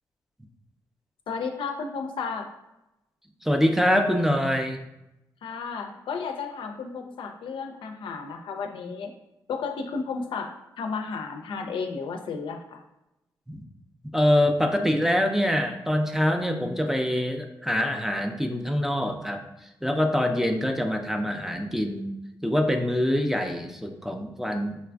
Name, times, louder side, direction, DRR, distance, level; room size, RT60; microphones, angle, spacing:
voice 1, 1.3-2.5 5.4-9.1 9.5-12.8, left 5 dB, 70° left, 4 dB, 0.4 m, -33 dB
voice 2, 3.4-4.8 13.5-13.6 14.1-19.4 19.8-22.1 22.4-24.8, equal, 5° right, 4 dB, 0.4 m, -24 dB
3.9 x 2.4 x 2.3 m, 0.92 s
supercardioid pair, 50°, 9 cm